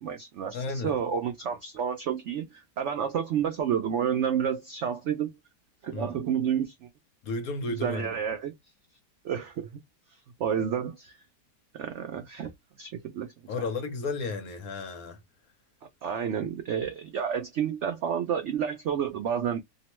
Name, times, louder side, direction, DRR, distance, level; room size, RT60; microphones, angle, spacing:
voice 1, 0.0-5.3 5.8-6.9 7.7-8.5 9.2-9.7 10.4-11.1 11.7-12.5 12.8-13.5 16.0-19.6, right 8 dB, 85° right, 0.6 m, -30 dB
voice 2, 0.5-1.0 5.9-6.2 7.2-8.1 13.5-15.2, left 3 dB, 65° left, 1.1 m, -33 dB
2.9 x 2.1 x 2.9 m
omnidirectional pair, 1.8 m